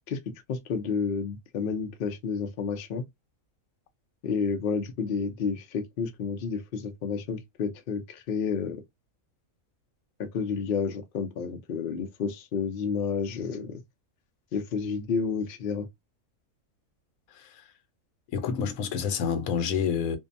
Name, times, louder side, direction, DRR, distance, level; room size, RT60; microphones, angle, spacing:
voice 1, 0.5-3.0 4.2-8.8 10.2-13.8 14.5-15.9, left 5 dB, 55° left, 0.6 m, -30 dB
voice 2, 17.3-17.6 18.3-20.2, left 7 dB, 90° left, 1.1 m, -28 dB
2.6 x 2.1 x 2.5 m
omnidirectional pair, 1.4 m